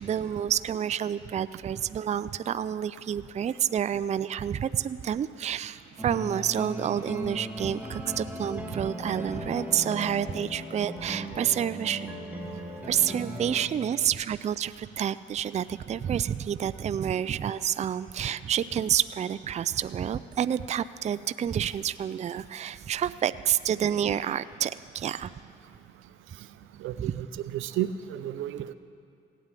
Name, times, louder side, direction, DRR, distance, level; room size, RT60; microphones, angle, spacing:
voice 1, 0.0-12.1 12.8-25.3 27.0-27.2, right 9 dB, 35° right, 15 dB, 0.4 m, -29 dB
sound 1, 6.0-13.7, equal, 10° right, 2.2 m, -37 dB
voice 2, 26.8-27.1 27.5-28.7, right 12 dB, 85° right, 13 dB, 0.6 m, -32 dB
16.5 x 9.1 x 9.0 m, 2.6 s
cardioid pair, 90°, 20 cm